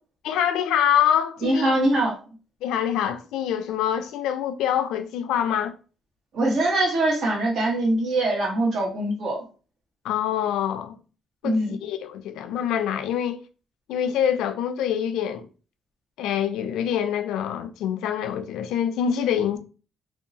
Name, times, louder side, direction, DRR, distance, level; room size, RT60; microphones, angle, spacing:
voice 1, 0.2-1.8 2.6-5.7 10.0-11.0 11.4-13.4 13.9-15.5 16.2-19.6, left 9 dB, 90° left, 0.3 m, -25 dB
voice 2, 1.4-2.1 6.3-9.4 11.4-11.8, right 1 dB, 70° right, 1.3 m, -23 dB
2.7 x 2.2 x 2.6 m
cardioid pair, 90°, 0 cm